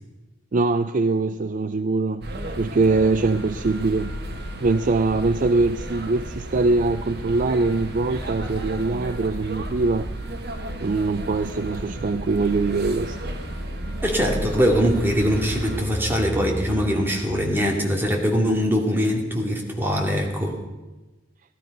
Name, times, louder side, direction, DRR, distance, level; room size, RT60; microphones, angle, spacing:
voice 1, 0.5-2.3 2.6-4.1 4.6-10.1 10.8-13.2, right 3 dB, 45° right, 11 dB, 0.5 m, -22 dB
sound 1, 2.2-15.8, right 1 dB, 60° right, 1.6 m, -33 dB
sound 2, 2.8-17.4, equal, 20° left, 1.8 m, -39 dB
voice 2, 14.0-20.6, equal, 10° right, 0 dB, 2.4 m, -22 dB
16.5 x 12.5 x 5.3 m, 1.1 s
head